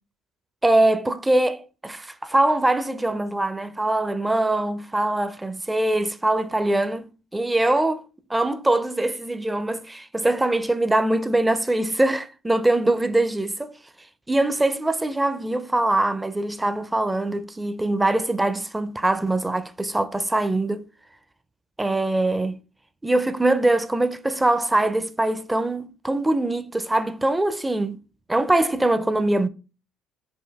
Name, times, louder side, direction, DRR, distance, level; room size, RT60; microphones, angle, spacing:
voice 1, 0.6-8.0 8.3-13.7 14.3-20.8 21.8-22.6 23.0-28.0 28.3-29.5, right 2 dB, 10° right, 0.4 m, -23 dB
5.3 x 2.6 x 3.4 m
cardioid pair, 95°, 0 cm